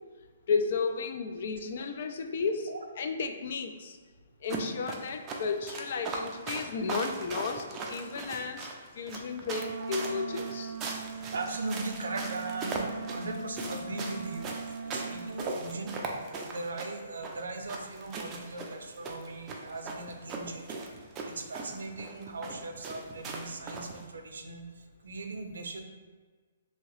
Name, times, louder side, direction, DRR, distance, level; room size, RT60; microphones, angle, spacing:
voice 1, 0.5-2.7 3.0-4.0 4.4-10.7, left 4 dB, 55° left, 6 dB, 0.3 m, -33 dB
sound 1, 4.5-24.1, right 3 dB, 20° right, 0.4 m, -39 dB
Wind instrument woodwind instrument, 9.4-15.5, right 4 dB, 5° left, 1.1 m, -40 dB
voice 2, 11.3-14.4 14.8-20.8 21.2-24.6 25.0-25.8, right 3 dB, 85° right, 5 dB, 0.4 m, -39 dB
2.8 x 2.8 x 3.0 m, 1.4 s
hypercardioid pair, 155°, 0 cm